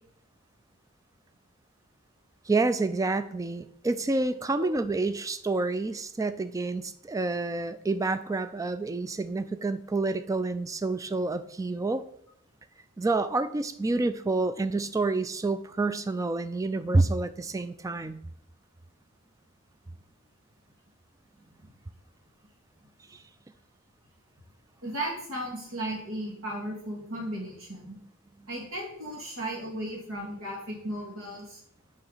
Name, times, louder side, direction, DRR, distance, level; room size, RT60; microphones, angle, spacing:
voice 1, 2.5-12.0 13.0-18.2 23.1-23.2, right 3 dB, 15° right, 12 dB, 0.3 m, -28 dB
voice 2, 24.8-28.0 28.5-31.6, right 1 dB, 75° right, -2 dB, 2.1 m, -35 dB
6.9 x 5.4 x 4.0 m, 0.69 s
head